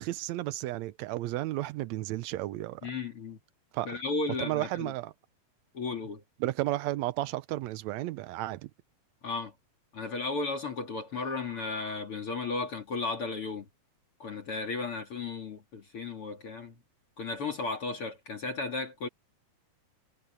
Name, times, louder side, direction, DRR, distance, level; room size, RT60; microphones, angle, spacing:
voice 1, 0.0-2.8 3.7-3.9 4.4-5.1 6.4-8.7, right 16 dB, 80° right, 1.7 m, -33 dB
voice 2, 2.8-3.4 3.8-4.9 5.7-6.2 9.2-9.5 9.9-13.7 14.2-16.7 17.2-19.1, left 3 dB, 45° left, 3.0 m, -34 dB
omnidirectional pair, 3.8 m